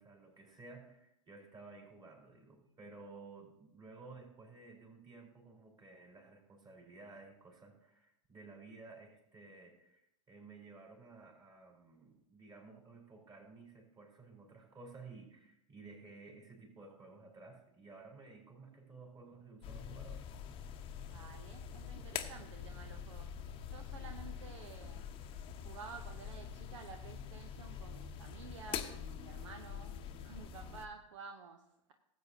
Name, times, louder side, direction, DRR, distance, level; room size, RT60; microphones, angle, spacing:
voice 1, 0.0-20.2, right 3 dB, 25° right, 0 dB, 4.1 m, -55 dB
sound 1, 19.6-30.9, left 8 dB, 30° left, 0.9 m, -45 dB
voice 2, 21.1-25.1 25.5-31.9, right 5 dB, 60° right, 6 dB, 0.8 m, -52 dB
18.0 x 8.3 x 2.8 m, 0.81 s
figure-of-eight pair, 90°, 17 cm